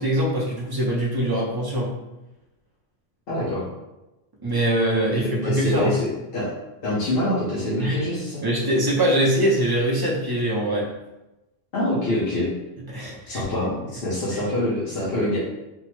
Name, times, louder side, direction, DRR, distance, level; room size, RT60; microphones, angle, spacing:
voice 1, 0.0-1.9 4.4-6.0 7.8-8.0 8.4-10.9 12.9-13.4 14.3-14.4, right 1 dB, 30° right, -3 dB, 0.5 m, -23 dB
voice 2, 3.3-3.6 5.2-6.5 6.8-8.4 11.7-12.5 13.2-15.4, left 1 dB, 60° left, -8 dB, 1.0 m, -25 dB
3.6 x 2.1 x 3.0 m, 0.98 s
omnidirectional pair, 1.1 m